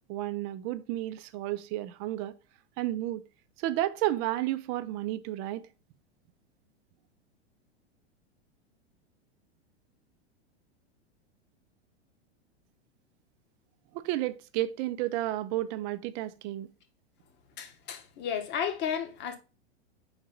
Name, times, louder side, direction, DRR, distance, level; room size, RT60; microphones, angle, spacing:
voice 1, 0.1-2.3 2.8-3.2 3.6-5.7 13.9-16.7, right 15 dB, 40° right, 0.5 m, -32 dB
voice 2, 17.6-19.4, left 8 dB, 35° left, 1.1 m, -33 dB
4.6 x 4.0 x 5.2 m
hypercardioid pair, 100°, 33 cm